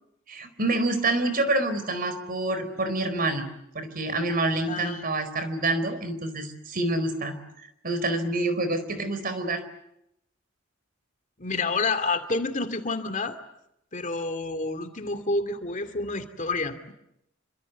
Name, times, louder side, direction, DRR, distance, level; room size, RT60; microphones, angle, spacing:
voice 1, 0.3-3.5 3.7-7.3 7.8-9.6, right 2 dB, 45° right, 10 dB, 4.6 m, -27 dB
voice 2, 4.7-5.0 11.4-13.4 13.9-16.9, left 3 dB, 40° left, 8 dB, 2.5 m, -29 dB
27.5 x 26.0 x 8.3 m, 0.81 s
head